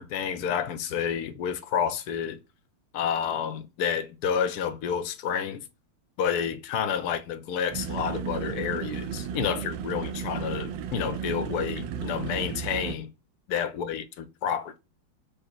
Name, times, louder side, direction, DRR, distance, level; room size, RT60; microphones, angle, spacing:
voice 1, 0.0-2.4 2.9-5.6 6.2-13.1 13.5-14.8, left 7 dB, 70° left, 0.9 m, -29 dB
sound 1, 7.7-13.0, right 7 dB, 80° right, 1.3 m, -34 dB
5.0 x 2.0 x 4.3 m
omnidirectional pair, 2.1 m